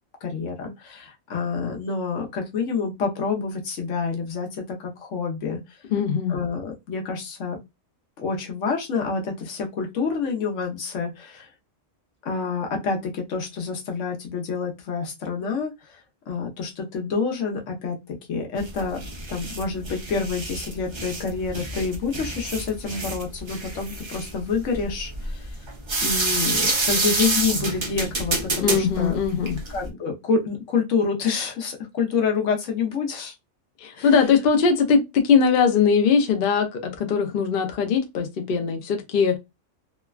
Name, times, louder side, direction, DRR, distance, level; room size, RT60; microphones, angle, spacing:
voice 1, 0.2-5.8 6.3-7.6 8.2-11.5 12.2-19.0 19.3-25.6 26.0-29.2 29.7-33.3 33.9-34.2, left 5 dB, 80° left, 1.1 m, -28 dB
voice 2, 5.9-6.4 28.6-29.6 33.8-39.4, left 6 dB, 55° left, 0.7 m, -21 dB
sound 1, 18.6-29.9, right 3 dB, 35° right, 0.4 m, -28 dB
3.2 x 2.1 x 2.2 m
omnidirectional pair, 1.3 m